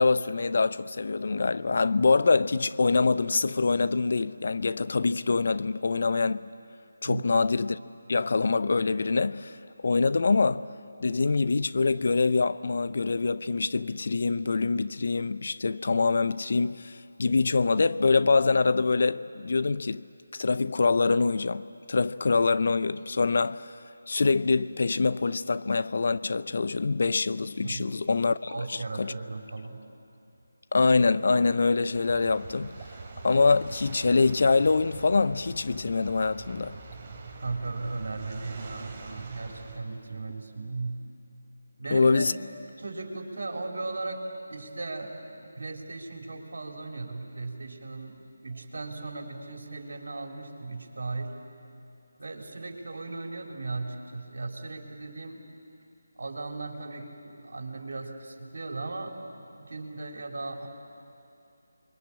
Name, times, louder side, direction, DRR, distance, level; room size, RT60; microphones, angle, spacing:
voice 1, 0.0-6.5 7.0-7.8 8.1-9.6 9.8-10.7 11.0-20.0 20.3-23.7 24.1-29.1 30.7-32.8 33.2-36.8 41.9-42.3, left 4 dB, 55° left, 0.6 m, -25 dB
voice 2, 27.6-27.9 28.4-29.9 37.4-41.0 41.8-42.4 42.8-44.2 44.5-51.4 52.2-55.4 56.2-60.7, right 3 dB, 65° right, 3.8 m, -37 dB
sound 1, 31.9-39.8, right 4 dB, 25° right, 3.2 m, -44 dB
29.5 x 22.5 x 8.7 m
figure-of-eight pair, 160°, 0 cm